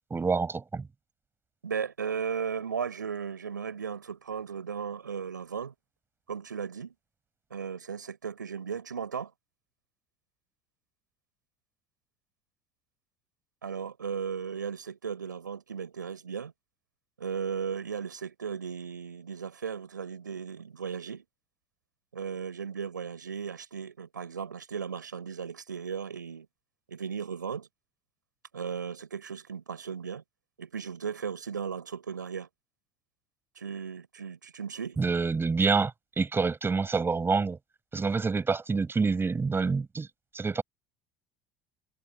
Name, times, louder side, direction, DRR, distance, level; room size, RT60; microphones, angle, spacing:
voice 1, 0.1-0.9 35.0-37.6 37.9-40.1 40.3-40.6, right 4 dB, 25° right, 7.2 m, -27 dB
voice 2, 1.6-5.7 6.3-6.9 7.5-9.3 13.6-16.5 17.2-21.2 22.1-26.5 26.9-27.7 28.5-30.2 30.6-32.5 33.6-35.0, right 6 dB, 85° right, 7.1 m, -36 dB
figure-of-eight pair, 60°, 10 cm